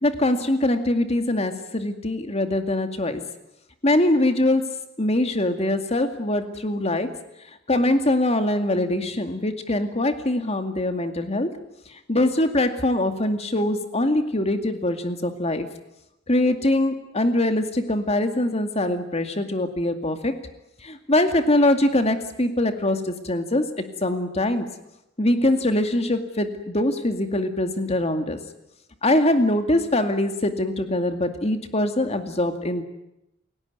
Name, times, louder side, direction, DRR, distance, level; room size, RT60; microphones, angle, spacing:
voice 1, 0.0-3.2 3.8-4.6 5.0-7.1 7.7-11.5 12.1-15.7 16.3-20.3 20.8-24.7 25.2-28.4 29.0-32.8, left 1 dB, 35° left, 7 dB, 2.3 m, -23 dB
29.5 x 17.0 x 9.6 m, 0.87 s
head